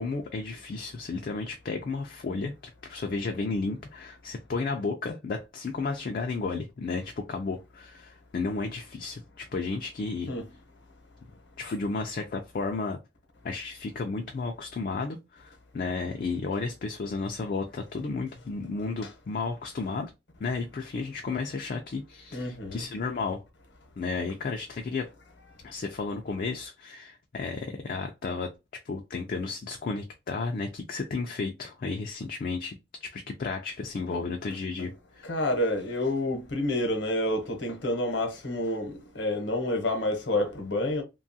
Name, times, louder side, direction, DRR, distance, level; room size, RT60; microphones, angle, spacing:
voice 1, 0.0-2.5 2.8-10.3 11.6-13.0 13.4-20.1 20.4-23.4 24.0-25.1 25.6-28.5 28.8-32.8 33.0-35.3, left 4 dB, 50° left, 0.3 m, -33 dB
voice 2, 22.3-22.9 34.1-34.2 34.8-34.9 35.2-41.0, left 1 dB, 75° left, 0.8 m, -29 dB
2.8 x 2.3 x 2.6 m
head